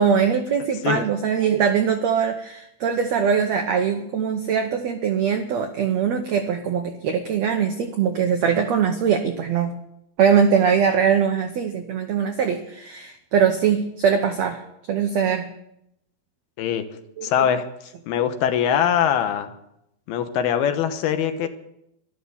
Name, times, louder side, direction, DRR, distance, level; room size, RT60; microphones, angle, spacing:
voice 1, 0.0-9.7 10.2-14.6 14.9-15.5 17.2-17.3, right 7 dB, 90° right, 6 dB, 1.5 m, -21 dB
voice 2, 17.2-17.6 18.1-19.5 20.1-21.5, left 9 dB, 80° left, 8 dB, 3.0 m, -22 dB
13.0 x 12.5 x 7.0 m, 0.80 s
omnidirectional pair, 4.4 m